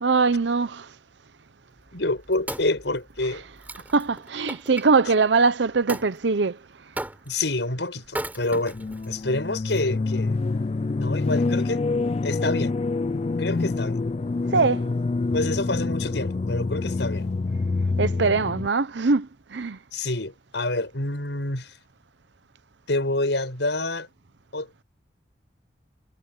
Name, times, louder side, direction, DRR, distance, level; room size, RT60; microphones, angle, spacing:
voice 1, 0.0-0.9 3.9-6.6 14.5-14.8 18.0-19.8, right 4 dB, 80° right, 0.7 m, -22 dB
voice 2, 1.9-3.4 7.3-8.8 9.1-10.4 11.0-11.8 12.2-12.8 13.4-14.0 15.3-17.3 19.9-21.8 22.9-24.1 24.5-24.8, left 2 dB, 80° left, 5.7 m, -27 dB
Wood, 1.9-4.9 5.9-6.1 7.0-7.5 8.1-9.1 9.7-9.8, right 1 dB, 10° right, 7.5 m, -36 dB
sound 1, 8.7-18.7, left 3 dB, 35° left, 0.3 m, -26 dB
head